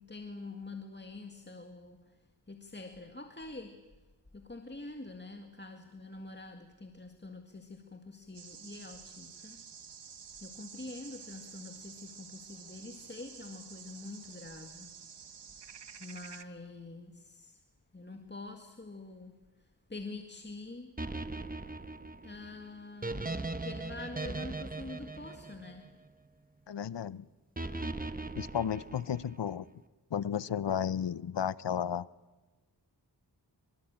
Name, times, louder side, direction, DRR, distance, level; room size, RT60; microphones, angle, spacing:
voice 1, 0.0-3.9 4.3-9.6 10.4-14.9 16.0-17.6 17.9-20.9 22.2-25.9, left 3 dB, 25° left, 5 dB, 2.0 m, -46 dB
sound 1, 8.3-16.4, right 7 dB, 80° right, 1.2 m, -50 dB
sound 2, 21.0-26.3 27.6-29.5, right 2 dB, 20° right, 1.3 m, -39 dB
voice 2, 26.7-27.3 28.3-29.6 30.1-32.1, left 8 dB, 90° left, 19 dB, 0.8 m, -33 dB
26.0 x 24.0 x 8.9 m, 1.2 s
wide cardioid pair, 90°, 41 cm